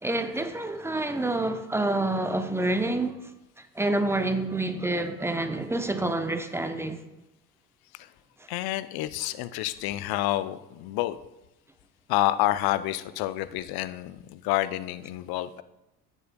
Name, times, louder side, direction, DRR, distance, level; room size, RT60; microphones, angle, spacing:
voice 1, 0.0-3.2 3.6-7.0, right 2 dB, 5° right, 0.7 m, -28 dB
voice 2, 8.5-11.2 12.1-15.6, left 15 dB, 50° left, 0.6 m, -28 dB
15.5 x 6.7 x 2.2 m
hypercardioid pair, 60°, 48 cm